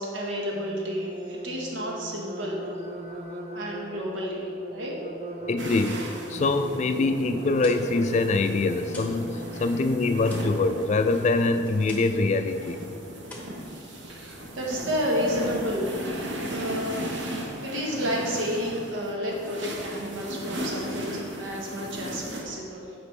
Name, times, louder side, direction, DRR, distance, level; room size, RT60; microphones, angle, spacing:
voice 1, 0.0-2.6 3.5-4.5 4.7-5.0 13.6-15.9 16.5-17.1 17.6-22.9, equal, 85° right, -2 dB, 1.2 m, -31 dB
sound 1, 0.5-10.1, right 2 dB, 35° right, 0.5 m, -41 dB
voice 2, 5.5-12.8, left 3 dB, 35° left, 8 dB, 0.3 m, -24 dB
sound 2, 5.6-22.4, equal, 70° right, 0.9 m, -36 dB
sound 3, 7.6-9.3 9.6-12.3 12.6-12.9 13.2-14.3, left 1 dB, 10° left, 0.9 m, -46 dB
8.1 x 5.1 x 3.2 m, 2.4 s
head